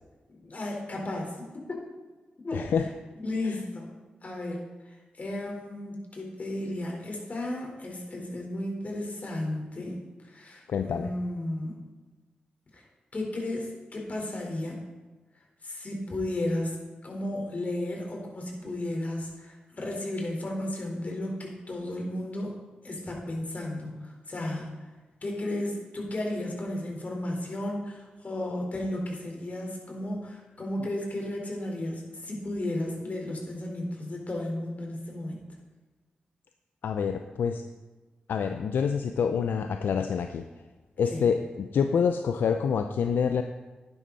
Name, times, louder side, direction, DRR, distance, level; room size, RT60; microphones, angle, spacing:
voice 1, 0.4-1.8 2.4-2.8 3.2-3.9 4.2-11.8 12.7-12.8 13.1-14.8 15.6-16.8 17.0-22.5 22.8-24.7 25.2-35.4 41.1-41.3, left 1 dB, 50° left, 0 dB, 4.4 m, -34 dB
voice 2, 2.5-2.8 3.4-3.6 10.7-11.1 30.8-30.9 36.8-37.6 38.3-40.4 41.0-43.4, left 6 dB, 80° left, 7 dB, 0.6 m, -27 dB
11.5 x 11.0 x 4.2 m, 1.3 s
supercardioid pair, 40°, 3 cm